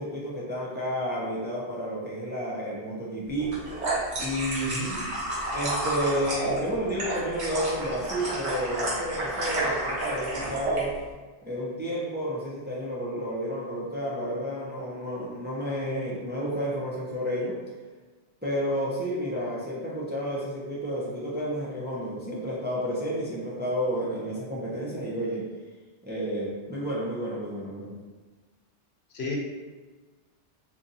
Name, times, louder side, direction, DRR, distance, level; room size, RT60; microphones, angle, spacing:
voice 1, 0.0-3.6 4.2-5.0 5.5-10.9 11.4-17.5 18.4-25.4 26.0-27.9, equal, 10° right, -6 dB, 0.5 m, -31 dB
sound 1, 3.4-10.8, right 1 dB, 75° right, 1.3 m, -30 dB
voice 2, 4.6-5.0 29.1-29.4, left 3 dB, 70° left, -2 dB, 0.9 m, -33 dB
3.8 x 2.8 x 2.6 m, 1.3 s
omnidirectional pair, 1.2 m